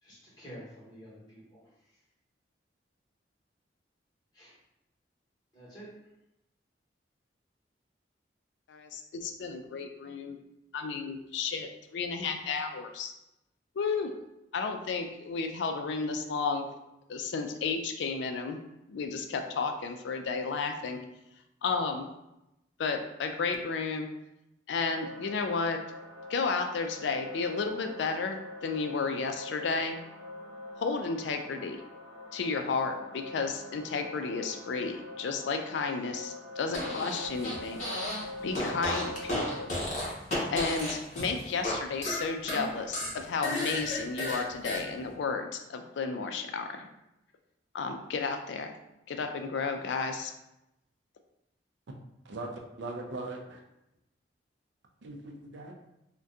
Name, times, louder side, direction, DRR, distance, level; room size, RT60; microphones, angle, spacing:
voice 1, 0.0-1.6 4.3-4.6 5.5-5.9, equal, 25° left, -7 dB, 1.2 m, -49 dB
voice 2, 8.7-10.4 10.7-13.1 13.8-14.1 14.5-16.7 17.1-18.6 18.9-21.0 21.6-22.1 22.8-24.1 24.7-25.8 26.3-30.0 30.8-31.8 32.3-37.8 38.4-39.7 40.5-46.9 47.7-48.7 49.1-50.3, left 4 dB, 75° left, 6 dB, 0.3 m, -32 dB
sound 1, 24.9-39.7, left 1 dB, 25° right, 0.6 m, -44 dB
Fart, 36.7-38.2 38.5-41.8 42.0-44.8, left 1 dB, 40° left, 0.8 m, -33 dB
voice 3, 52.2-53.6 55.0-55.7, right 2 dB, 75° right, 2 dB, 0.5 m, -40 dB
2.6 x 2.2 x 3.5 m, 0.89 s
head